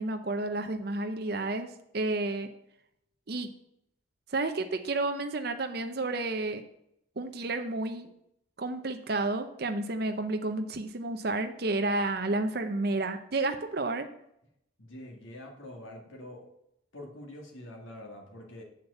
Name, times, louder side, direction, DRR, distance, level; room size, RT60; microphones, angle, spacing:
voice 1, 0.0-1.7 1.9-2.5 3.3-3.5 4.3-6.6 7.2-8.1 8.6-14.1, right 2 dB, 50° right, 6 dB, 0.7 m, -31 dB
voice 2, 14.8-16.5 16.9-18.6, left 1 dB, 80° left, 0 dB, 2.0 m, -45 dB
7.5 x 7.2 x 6.8 m, 0.77 s
head